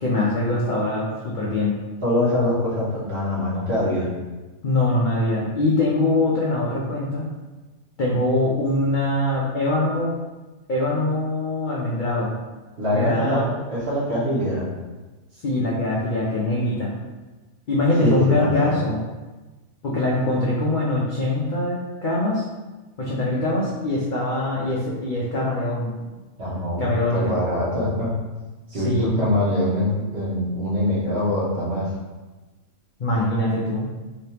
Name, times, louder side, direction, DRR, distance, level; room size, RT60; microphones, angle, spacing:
voice 1, 0.0-1.7 4.6-7.3 8.0-10.1 10.7-12.3 12.9-13.5 15.4-16.9 17.7-19.0 19.8-22.4 23.0-25.9 26.8-27.4 28.7-29.2 33.0-33.9, left 2 dB, 65° left, -5 dB, 0.5 m, -23 dB
voice 2, 2.0-4.1 12.8-14.7 18.0-18.7 26.4-28.1 28.7-31.9, left 1 dB, 50° right, -7 dB, 1.2 m, -23 dB
3.3 x 3.1 x 2.8 m, 1.2 s
omnidirectional pair, 1.5 m